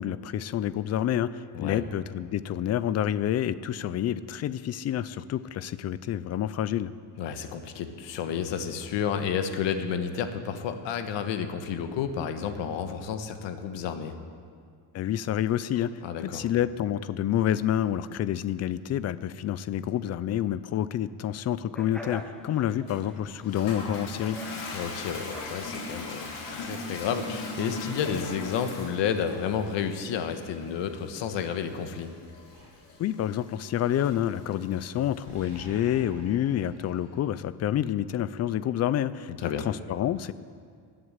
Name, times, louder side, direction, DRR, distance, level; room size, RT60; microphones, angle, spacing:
voice 1, 0.0-6.9 14.9-15.9 16.2-24.4 33.0-40.3, left 11 dB, 40° left, 16 dB, 0.4 m, -28 dB
voice 2, 7.2-14.1 16.0-16.5 24.7-32.1 39.4-39.7, left 7 dB, 90° left, 8 dB, 1.4 m, -31 dB
sound 1, 21.7-26.8, equal, ahead, 1.0 m, -46 dB
Toilet flush, 22.9-35.7, left 2 dB, 75° left, 3.7 m, -40 dB
Animal, 32.5-33.3 33.8-34.6 34.9-37.8, right 2 dB, 50° right, 5.0 m, -49 dB
20.0 x 7.9 x 8.1 m, 2.1 s
cardioid pair, 165°, 42 cm